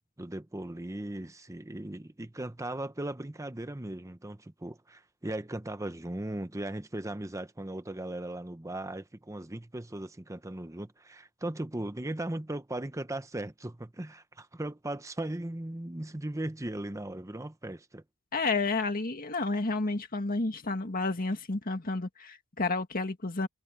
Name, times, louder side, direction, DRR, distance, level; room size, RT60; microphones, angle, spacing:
voice 1, 0.2-18.0, right 1 dB, 15° right, 0.8 m, -38 dB
voice 2, 18.3-23.5, left 3 dB, 40° left, 1.9 m, -31 dB
head